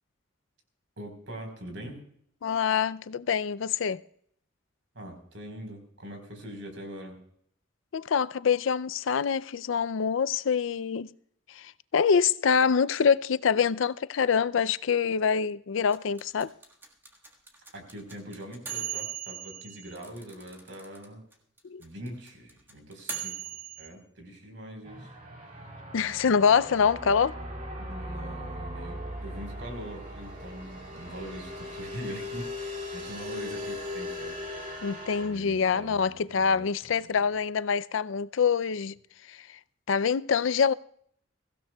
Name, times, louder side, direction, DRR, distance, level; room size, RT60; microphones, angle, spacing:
voice 1, 1.0-2.0 4.9-7.1 17.7-21.2 21.8-25.1 27.8-34.4 35.2-36.7 37.0-37.2, equal, 70° right, 4.3 m, -42 dB
voice 2, 2.4-4.0 7.9-11.1 11.5-16.5 21.6-21.8 25.9-27.4 34.8-38.9 39.3-39.6 39.9-40.7, left 6 dB, 80° left, 0.4 m, -25 dB
sound 1, 15.9-21.0 21.3-21.4 21.6-23.9, right 8 dB, 10° right, 1.6 m, -38 dB
sound 2, 24.8-35.3, left 1 dB, 35° right, 2.6 m, -39 dB
23.0 x 15.5 x 2.3 m
head